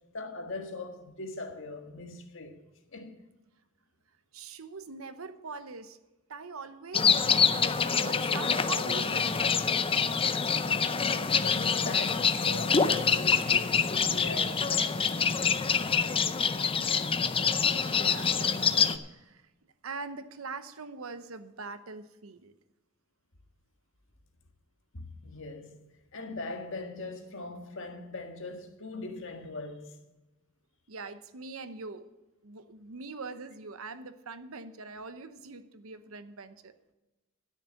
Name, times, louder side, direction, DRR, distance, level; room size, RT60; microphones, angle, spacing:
voice 1, 0.1-2.6 2.9-3.2 11.2-16.0 24.9-25.8 26.1-30.0, left 2 dB, 65° left, 1.6 m, -41 dB
voice 2, 4.3-6.0 6.3-7.6 7.9-9.6 10.2-10.5 17.6-18.7 19.1-19.4 19.8-22.5 30.9-32.1 32.4-36.7, right 4 dB, 80° right, 0.9 m, -42 dB
sound 1, 6.9-19.0, left 6 dB, 25° left, 0.6 m, -26 dB
12.0 x 6.7 x 7.6 m
head